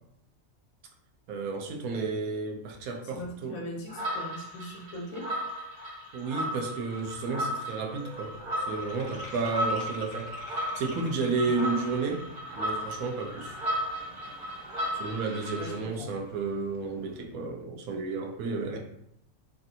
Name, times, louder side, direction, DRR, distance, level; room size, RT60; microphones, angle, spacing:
voice 1, 1.3-3.6 6.1-8.4 8.6-12.3 12.6-13.5 14.9-18.8, right 4 dB, 85° right, 2 dB, 1.1 m, -32 dB
voice 2, 3.0-5.3 11.4-11.6 14.2-14.3 15.6-16.1, left 1 dB, 75° left, 1 dB, 1.1 m, -40 dB
sound 1, 3.9-15.8, equal, 60° right, 1.0 m, -35 dB
sound 2, 7.0-7.1 7.3-12.0, left 3 dB, 60° left, 0.6 m, -49 dB
sound 3, 7.9-17.2, right 2 dB, 10° left, 0.4 m, -52 dB
3.2 x 2.5 x 2.7 m, 0.74 s
omnidirectional pair, 1.5 m